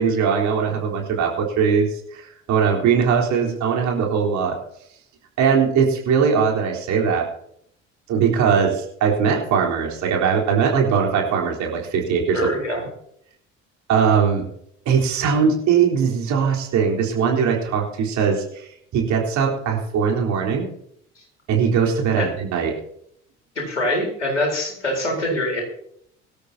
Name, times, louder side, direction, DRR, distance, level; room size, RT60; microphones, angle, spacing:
voice 1, 0.0-4.6 5.4-7.3 8.1-12.4 13.9-14.4 14.9-18.7 18.9-20.7 21.5-22.8, right 6 dB, 50° right, 0 dB, 3.9 m, -20 dB
voice 2, 12.3-12.8 22.2-22.3 23.6-25.6, left 1 dB, 85° left, 1 dB, 4.1 m, -24 dB
23.5 x 13.0 x 2.8 m, 0.71 s
figure-of-eight pair, 55°, 35 cm